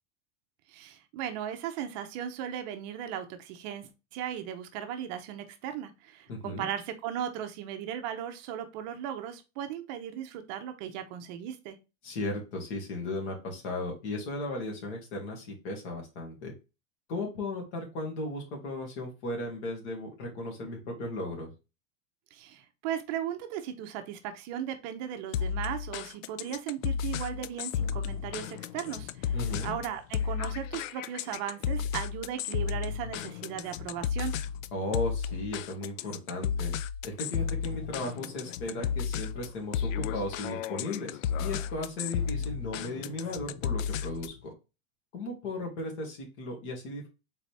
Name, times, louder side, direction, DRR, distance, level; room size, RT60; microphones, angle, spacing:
voice 1, 0.7-11.8 22.3-34.3, right 10 dB, 35° right, 7 dB, 0.6 m, -37 dB
voice 2, 6.3-6.7 12.0-16.5 17.1-21.5 29.3-29.8 34.7-36.7 37.0-44.5 45.1-47.1, left 2 dB, 60° left, 1 dB, 2.4 m, -36 dB
sound 1, 25.3-44.4, left 7 dB, 75° left, 0.5 m, -33 dB
4.0 x 3.9 x 3.3 m, 0.28 s
supercardioid pair, 160°, 39 cm